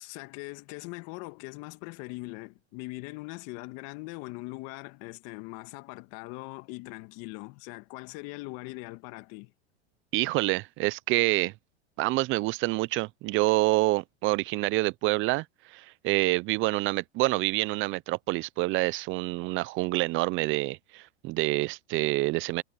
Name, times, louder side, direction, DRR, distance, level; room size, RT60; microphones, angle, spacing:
voice 1, 0.0-9.5, left 24 dB, 50° left, 1.8 m, -41 dB
voice 2, 10.1-11.5 12.0-22.6, right 20 dB, 40° right, 0.6 m, -27 dB
hypercardioid pair, 110°, 31 cm